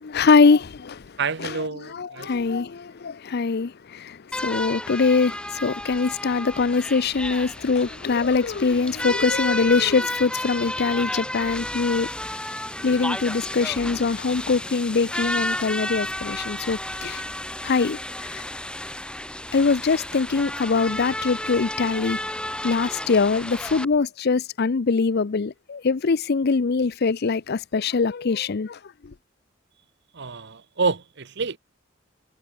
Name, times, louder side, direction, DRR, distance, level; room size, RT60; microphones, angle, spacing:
voice 1, 0.0-1.1 1.4-1.6 1.9-12.1 12.8-17.2 17.6-18.4 19.5-22.2 22.6-29.1, left 4 dB, 55° left, 0.6 m, -23 dB
voice 2, 1.2-2.3 30.1-31.6, right 4 dB, 60° right, 1.1 m, -28 dB
sound 1, 4.3-23.8, left 1 dB, 5° left, 1.5 m, -32 dB
head